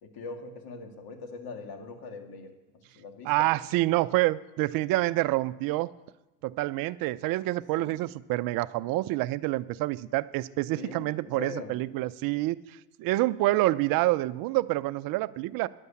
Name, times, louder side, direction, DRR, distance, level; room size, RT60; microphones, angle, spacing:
voice 1, 0.0-3.5 7.8-8.0 10.8-11.7, left 4 dB, 50° left, 5 dB, 2.0 m, -42 dB
voice 2, 3.2-5.9 6.4-15.7, right 18 dB, 45° right, 16 dB, 0.5 m, -27 dB
11.0 x 8.1 x 8.4 m, 1.0 s
hypercardioid pair, 95°, 49 cm